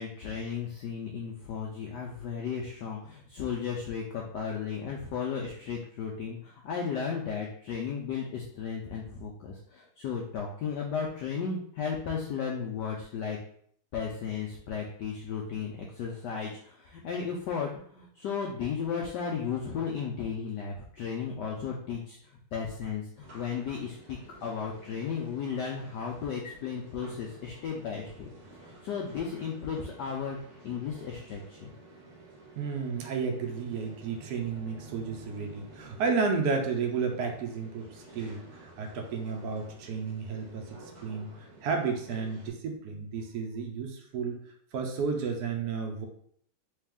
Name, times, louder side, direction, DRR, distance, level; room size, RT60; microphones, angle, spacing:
voice 1, 0.0-13.4 13.9-22.2 22.5-28.3 28.6-31.7, left 6 dB, 85° left, -1 dB, 0.9 m, -35 dB
sound 1, 23.2-42.5, right 2 dB, 45° right, 1.0 m, -51 dB
voice 2, 32.6-41.3 41.6-44.4 44.7-46.1, right 5 dB, 85° right, 2 dB, 0.8 m, -32 dB
3.3 x 3.2 x 3.5 m, 0.62 s
omnidirectional pair, 2.4 m